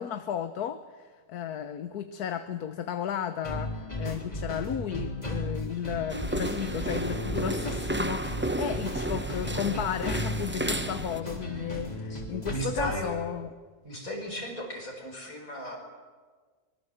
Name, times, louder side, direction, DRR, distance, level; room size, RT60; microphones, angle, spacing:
voice 1, 0.0-13.5, left 9 dB, 75° left, 10 dB, 1.5 m, -34 dB
sound 1, 3.4-13.0, left 1 dB, 25° left, 3.7 m, -36 dB
sound 2, 6.1-11.2, right 1 dB, 10° right, 0.6 m, -32 dB
voice 2, 12.5-13.1 13.8-15.8, equal, 60° left, 1 dB, 5.6 m, -35 dB
24.0 x 22.0 x 7.8 m, 1.5 s
omnidirectional pair, 1.7 m